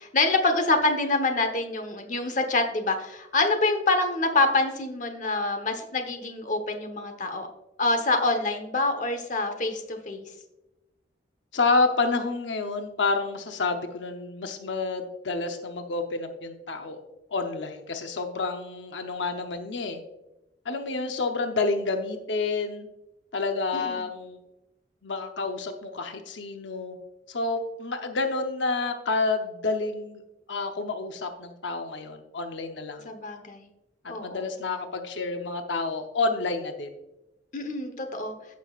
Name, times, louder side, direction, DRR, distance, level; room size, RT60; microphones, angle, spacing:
voice 1, 0.0-7.5 7.8-10.2 23.7-24.0 33.0-33.7 34.1-34.5 37.5-38.3, left 2 dB, 45° left, 6 dB, 1.0 m, -26 dB
voice 2, 11.5-17.0 17.3-20.0 20.7-22.9 23.3-24.4 25.0-27.0 27.3-30.2 30.5-33.1 34.2-36.9, left 3 dB, 90° left, 6 dB, 0.8 m, -29 dB
14.5 x 6.2 x 2.4 m, 0.95 s
head